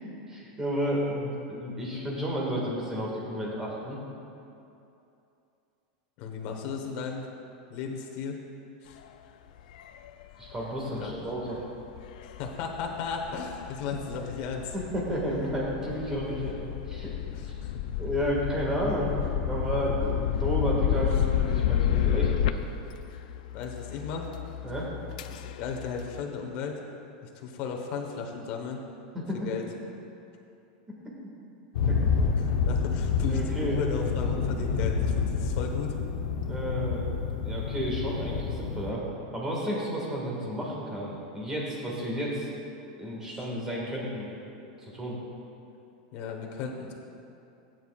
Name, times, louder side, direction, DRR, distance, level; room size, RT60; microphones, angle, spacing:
voice 1, 0.3-4.0 10.4-11.6 14.7-17.1 17.4-17.6 18.0-22.6 24.6-24.9 29.1-29.5 31.9-32.1 33.3-33.8 36.5-37.1 37.4-39.0 39.3-42.5 43.0-44.3 44.8-45.2, equal, 10° right, -4 dB, 2.0 m, -32 dB
voice 2, 6.2-7.3 7.7-8.4 8.8-9.0 11.0-11.2 12.2-14.7 17.3-17.8 23.5-24.3 25.3-26.8 27.2-28.8 29.4-29.6 32.4-35.9 43.3-43.4 46.1-46.9, left 5 dB, 40° left, 2 dB, 1.3 m, -35 dB
sound 1, 9.6-26.2, left 10 dB, 70° left, 0.4 m, -31 dB
sound 2, 31.8-38.9, left 5 dB, 90° left, 0.9 m, -28 dB
16.5 x 9.3 x 2.5 m, 2.7 s
supercardioid pair, 165°, 4 cm